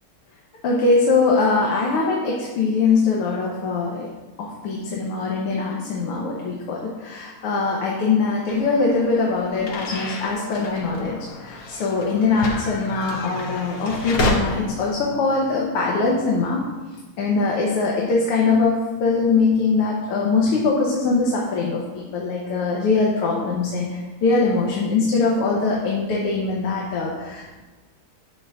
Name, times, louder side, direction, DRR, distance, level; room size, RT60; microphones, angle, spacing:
voice 1, 0.6-4.1 4.4-16.6 17.2-23.9 24.2-27.6, left 4 dB, 85° left, -2 dB, 2.0 m, -22 dB
sound 1, 8.5-14.3, left 2 dB, 60° left, 1.6 m, -30 dB
11.5 x 7.7 x 2.5 m, 1.3 s
omnidirectional pair, 2.4 m